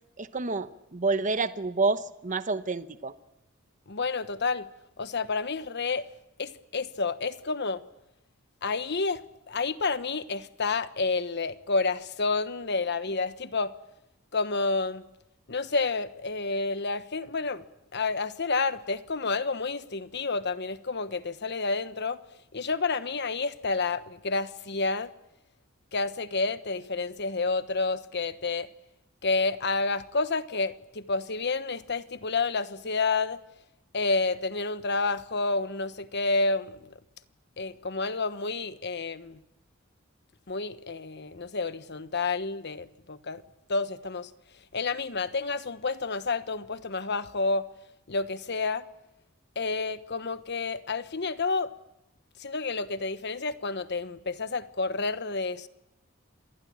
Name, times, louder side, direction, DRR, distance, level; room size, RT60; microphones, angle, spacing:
voice 1, 0.2-3.1, right 3 dB, 40° right, 11 dB, 1.0 m, -28 dB
voice 2, 3.9-4.7 5.0-6.1 6.4-7.8 8.6-9.2 9.5-13.7 14.3-15.0 15.5-17.6 17.9-22.2 22.5-25.1 25.9-28.7 29.2-33.4 33.9-37.0 37.6-39.4 40.5-43.4 43.7-44.3 44.7-47.7 48.1-48.8 49.5-51.7 52.4-55.7, left 3 dB, 55° left, 12 dB, 1.2 m, -29 dB
27.0 x 20.0 x 8.8 m, 0.86 s
head